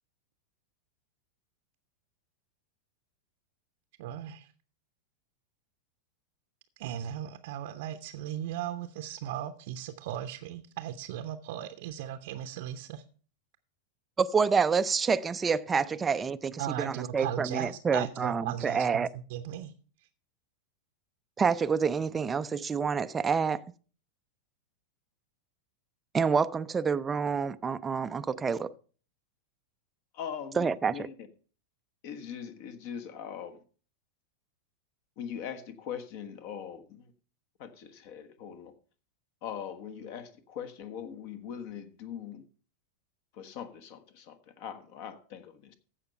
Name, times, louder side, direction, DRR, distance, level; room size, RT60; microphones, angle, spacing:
voice 1, 4.0-4.5 6.8-13.0 16.6-19.7, right 11 dB, 50° right, 0.7 m, -37 dB
voice 2, 14.2-19.1 21.4-23.6 26.1-28.7 30.6-30.9, right 5 dB, 15° right, 0.4 m, -28 dB
voice 3, 30.1-31.3 32.0-33.6 35.2-37.1 37.6-38.7 39.4-42.4 43.3-45.7, left 8 dB, 45° left, 1.3 m, -41 dB
15.0 x 5.7 x 5.4 m
figure-of-eight pair, 90°, 0 cm